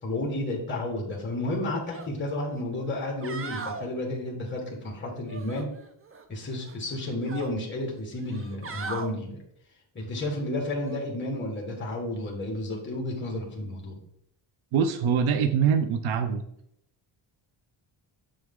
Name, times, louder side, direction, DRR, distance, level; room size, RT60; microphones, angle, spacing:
voice 1, 0.0-5.7 6.3-9.4 9.9-14.0, left 1 dB, 25° left, -1 dB, 1.7 m, -32 dB
sound 1, 1.9-2.1 2.5-2.6 3.1-3.9 5.3-6.2 6.6-7.5 8.2-9.1 10.8-11.0, right 4 dB, 30° right, 0.6 m, -38 dB
voice 2, 14.7-16.4, right 7 dB, 85° right, 8 dB, 0.7 m, -24 dB
6.8 x 6.3 x 3.7 m, 0.73 s
wide cardioid pair, 155°, 48 cm